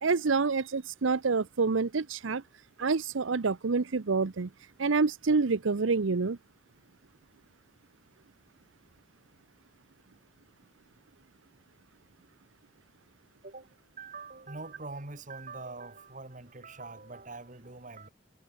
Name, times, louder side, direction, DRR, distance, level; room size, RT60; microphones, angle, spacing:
voice 1, 0.0-2.4 2.8-4.5 4.8-6.4, right 4 dB, 85° right, 0.7 m, -27 dB
voice 2, 13.4-18.1, right 3 dB, 40° right, 2.3 m, -44 dB
head